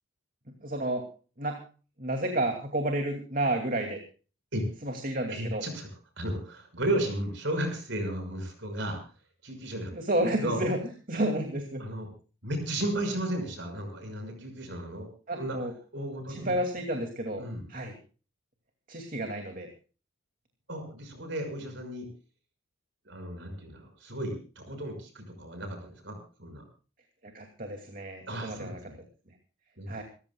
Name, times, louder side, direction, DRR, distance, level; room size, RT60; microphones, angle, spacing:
voice 1, 0.6-1.0 1.4-1.6 2.0-4.0 4.8-5.6 9.9-10.8 11.1-11.8 15.3-15.7 16.3-17.9 18.9-19.7 27.2-28.8 29.9-30.0, right 1 dB, 40° right, 4 dB, 2.5 m, -31 dB
voice 2, 5.3-5.9 6.2-9.0 9.4-9.9 10.4-10.6 11.8-12.1 12.4-15.1 15.4-15.6 15.9-16.5 17.4-17.7 20.7-22.1 23.0-26.6 28.3-29.0 29.8-30.0, right 1 dB, 60° right, 5 dB, 5.9 m, -34 dB
27.5 x 15.0 x 2.3 m, 0.37 s
head